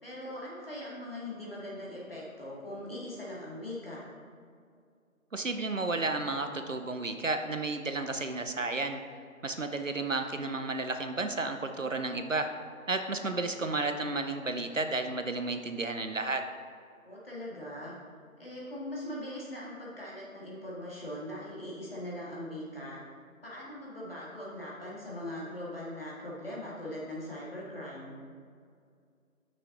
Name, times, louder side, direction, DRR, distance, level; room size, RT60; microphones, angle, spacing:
voice 1, 0.0-4.0 17.0-17.9 18.4-23.0 23.4-28.2, left 1 dB, 40° left, -6 dB, 1.9 m, -40 dB
voice 2, 5.3-9.0 9.4-12.5 12.9-16.4, right 3 dB, 60° right, 7 dB, 0.6 m, -32 dB
7.5 x 6.2 x 3.8 m, 2.3 s
figure-of-eight pair, 170°, 43 cm